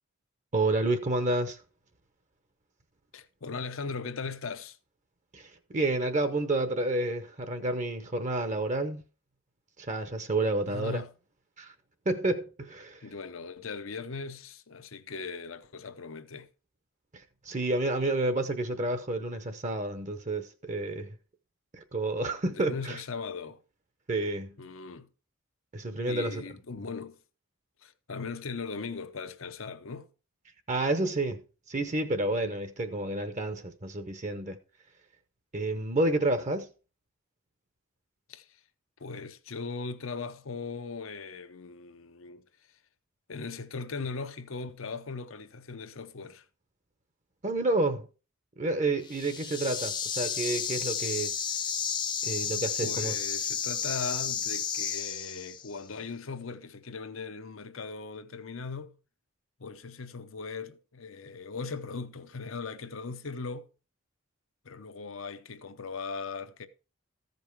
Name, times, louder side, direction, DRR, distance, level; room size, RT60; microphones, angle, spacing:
voice 1, 0.5-1.6 5.3-9.0 9.8-11.0 11.6-11.7 12.1-13.0 17.1-21.2 21.7-23.0 24.1-24.6 25.7-26.4 30.7-31.4 31.7-34.6 35.5-36.7 47.4-48.1 48.6-51.3 52.2-53.1, right 2 dB, 35° right, 0.8 m, -30 dB
voice 2, 3.1-4.8 10.7-11.1 13.0-16.5 22.3-23.6 24.6-25.1 26.1-27.2 27.8-30.1 38.3-38.6 39.0-42.5 43.3-46.5 52.8-58.9 59.6-63.7 64.6-66.7, left 4 dB, 75° left, 0.8 m, -39 dB
sound 1, 49.0-55.8, left 7 dB, 20° left, 0.6 m, -32 dB
14.0 x 5.4 x 4.6 m
head